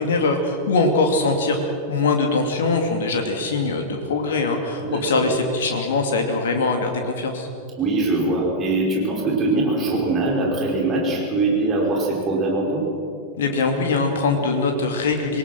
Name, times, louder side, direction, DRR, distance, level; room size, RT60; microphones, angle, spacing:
voice 1, 0.0-1.6 1.9-7.5 13.4-15.4, left 3 dB, 60° left, 3 dB, 2.5 m, -22 dB
voice 2, 4.8-5.3 7.8-12.8, right 2 dB, 25° right, -2 dB, 5.5 m, -22 dB
26.0 x 19.5 x 6.1 m, 2.5 s
figure-of-eight pair, 90°, 0 cm